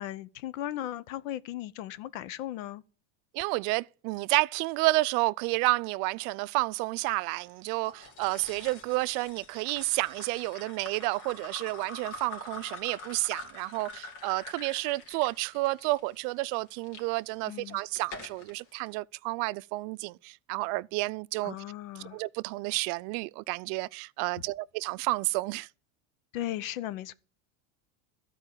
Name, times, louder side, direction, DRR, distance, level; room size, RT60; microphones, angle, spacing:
voice 1, 0.0-2.8 17.5-17.8 21.4-22.2 26.3-27.1, left 13 dB, 85° left, 0.9 m, -37 dB
voice 2, 3.3-21.5 22.1-25.7, right 22 dB, 60° right, 0.5 m, -30 dB
sound 1, 7.8-17.0 17.6-18.5, left 3 dB, 65° left, 2.9 m, -45 dB
13.0 x 4.9 x 8.9 m
supercardioid pair, 130°, 39 cm